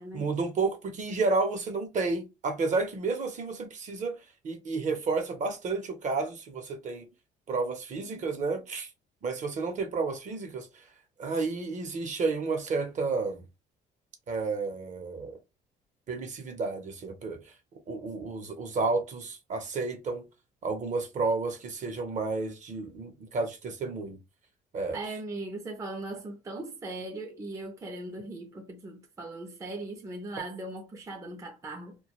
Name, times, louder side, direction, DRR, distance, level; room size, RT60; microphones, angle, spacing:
voice 1, 0.1-4.2 4.4-7.1 7.5-8.9 9.2-10.7 11.2-13.4 14.3-15.4 16.1-17.4 17.9-20.2 20.6-24.2 24.7-25.0, right 3 dB, 45° right, 0.7 m, -31 dB
voice 2, 24.9-32.0, right 2 dB, 20° right, 0.5 m, -39 dB
2.3 x 2.2 x 3.0 m
cardioid pair, 110°, 17 cm